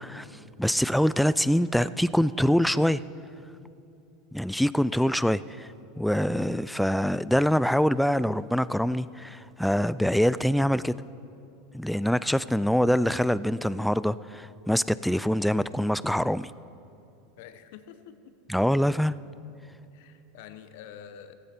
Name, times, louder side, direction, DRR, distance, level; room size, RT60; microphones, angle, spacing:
voice 1, 0.0-3.0 4.3-5.7 6.0-10.9 11.7-16.5 18.5-19.2, equal, ahead, 17 dB, 0.3 m, -24 dB
voice 2, 17.4-18.3 19.9-21.3, left 9 dB, 70° left, 10 dB, 1.0 m, -47 dB
15.5 x 15.0 x 4.4 m, 2.7 s
supercardioid pair, 120°, 0 cm